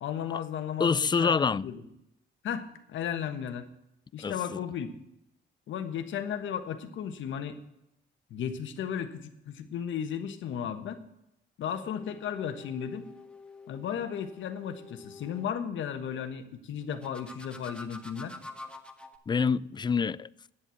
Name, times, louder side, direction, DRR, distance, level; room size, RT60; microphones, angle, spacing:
voice 1, 0.0-1.3 1.6-1.8 2.4-3.7 4.1-4.9 5.7-7.6 8.3-11.0 11.6-13.1 13.7-18.3, left 8 dB, 75° left, 1.4 m, -35 dB
voice 2, 0.8-1.7 4.2-4.6 19.3-20.3, left 5 dB, 20° left, 0.4 m, -26 dB
sound 1, 11.7-15.5 16.9-19.2, left 3 dB, 5° left, 1.5 m, -47 dB
10.0 x 7.6 x 8.4 m
cardioid pair, 90°, 20 cm